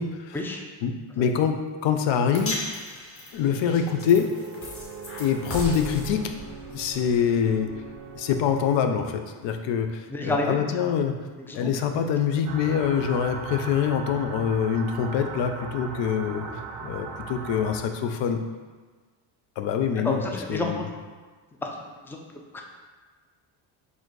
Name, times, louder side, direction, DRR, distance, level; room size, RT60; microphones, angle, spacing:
voice 1, 0.0-0.4 0.8-2.6 3.3-4.3 5.2-6.3 6.7-7.7 8.1-11.2 11.5-16.5 16.8-18.4 19.6-20.9, left 7 dB, 65° left, 6 dB, 0.6 m, -25 dB
sound 1, 2.3-8.7, left 1 dB, 30° left, 1.0 m, -38 dB
sound 2, 3.4-9.8, right 5 dB, 40° right, 0.6 m, -43 dB
voice 2, 10.1-10.6 11.5-12.0 20.0-20.9 22.1-22.2 22.5-22.6, left 2 dB, 5° left, 1 dB, 0.4 m, -29 dB
sound 3, 12.5-17.8, right 5 dB, 85° right, 0.7 m, -37 dB
4.2 x 2.7 x 4.6 m, 1.4 s
cardioid pair, 100°, 47 cm